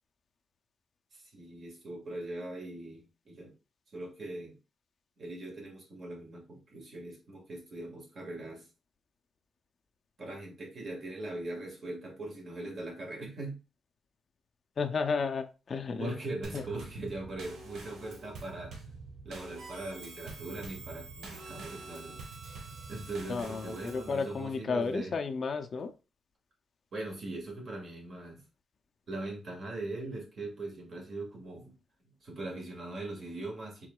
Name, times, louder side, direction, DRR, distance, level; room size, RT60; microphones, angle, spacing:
voice 1, 1.1-3.5 3.9-4.6 5.2-8.7 10.2-13.6 16.0-18.8 19.2-22.2 22.9-25.2 26.9-28.4 29.1-31.8 32.0-33.9, right 2 dB, 50° right, 1.8 m, -41 dB
voice 2, 14.8-16.1 16.5-16.6 23.3-25.9, left 5 dB, 45° left, 0.5 m, -32 dB
Drum kit / Snare drum / Bass drum, 16.4-24.1, right 3 dB, 85° right, 1.3 m, -47 dB
Harmonica, 19.6-24.6, right 4 dB, 70° right, 0.9 m, -50 dB
4.6 x 3.8 x 2.2 m
cardioid pair, 130°, 0 cm